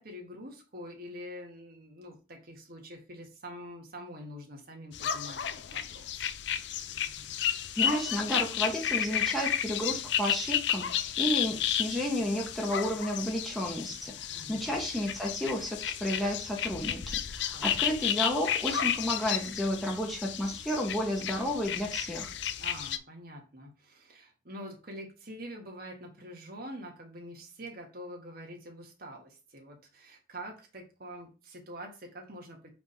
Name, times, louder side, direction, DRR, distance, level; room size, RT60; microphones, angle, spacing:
voice 1, 0.0-6.3 14.3-14.6 17.5-17.8 22.6-32.7, equal, 50° right, 2 dB, 1.6 m, -45 dB
sound 1, 4.9-23.0, left 10 dB, 65° left, 0.5 m, -32 dB
voice 2, 7.5-22.3, equal, ahead, -2 dB, 1.1 m, -32 dB
5.1 x 3.4 x 5.5 m, 0.33 s
head